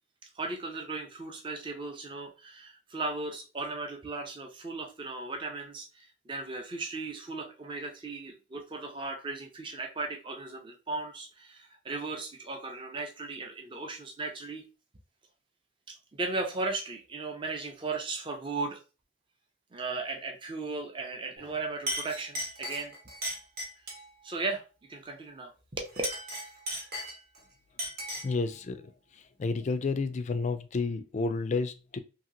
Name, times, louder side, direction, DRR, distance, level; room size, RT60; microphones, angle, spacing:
voice 1, 0.3-14.7 15.9-18.8 19.7-22.9 24.2-24.6 24.9-26.0, right 3 dB, 25° right, 0.5 m, -36 dB
Chink clink, 21.4-21.5 21.9-24.1 25.8-27.4 27.8-28.4, equal, 50° right, 0.9 m, -36 dB
voice 2, 28.2-28.8 29.4-32.0, left 3 dB, 35° left, 0.3 m, -30 dB
2.8 x 2.7 x 2.5 m
head